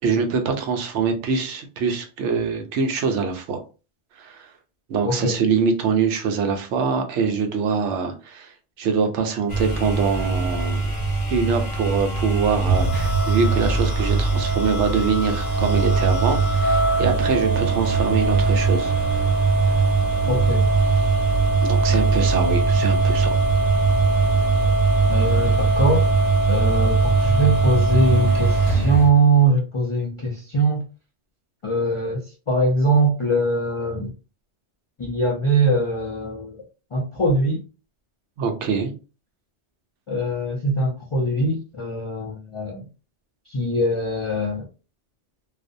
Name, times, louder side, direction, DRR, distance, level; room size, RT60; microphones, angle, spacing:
voice 1, 0.0-3.6 4.2-4.5 4.9-10.9 11.3-18.9 21.6-23.3 38.4-38.9, right 5 dB, 80° right, 0.9 m, -24 dB
voice 2, 5.0-5.4 20.3-20.7 25.1-26.1 26.5-30.8 31.6-32.2 32.5-34.1 35.0-36.6 36.9-37.6 40.1-42.8 43.5-44.7, right 2 dB, 55° left, 0.3 m, -22 dB
sound 1, 9.5-29.1, right 3 dB, 40° left, 0.8 m, -20 dB
2.5 x 2.0 x 2.5 m
omnidirectional pair, 1.2 m